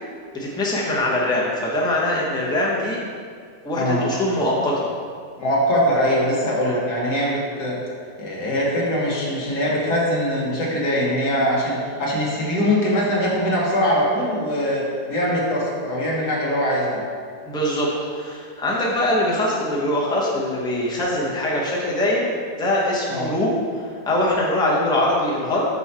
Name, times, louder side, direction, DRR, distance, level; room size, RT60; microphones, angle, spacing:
voice 1, 0.3-3.0 3.6-4.9 17.5-22.3 22.6-23.6 24.1-25.7, left 1 dB, 5° left, -5 dB, 0.6 m, -22 dB
voice 2, 3.8-4.1 5.4-7.8 8.2-17.0 23.1-23.3, equal, 60° left, -4 dB, 1.9 m, -22 dB
5.9 x 5.5 x 4.3 m, 2.1 s
omnidirectional pair, 2.0 m